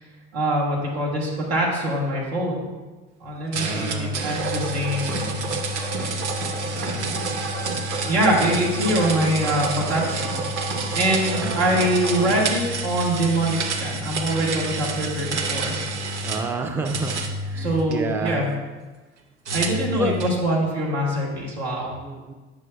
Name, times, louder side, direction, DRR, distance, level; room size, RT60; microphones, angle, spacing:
voice 1, 0.3-2.8 3.2-5.5 6.6-7.2 8.1-10.4 10.9-15.8 17.6-18.5 19.5-22.0, right 1 dB, 75° right, -3 dB, 1.7 m, -24 dB
voice 2, 3.5-4.1 11.2-11.9 16.2-17.2 17.5-18.5 20.0-20.2 22.0-22.3, right 2 dB, 5° right, 4 dB, 0.5 m, -29 dB
sound 1, 3.5-16.5 16.8-18.3 19.4-20.4, right 2 dB, 90° right, 0.6 m, -29 dB
sound 2, 4.2-12.5, right 4 dB, 35° right, 1.0 m, -32 dB
8.9 x 6.1 x 2.3 m, 1.3 s
figure-of-eight pair, 60°, 33 cm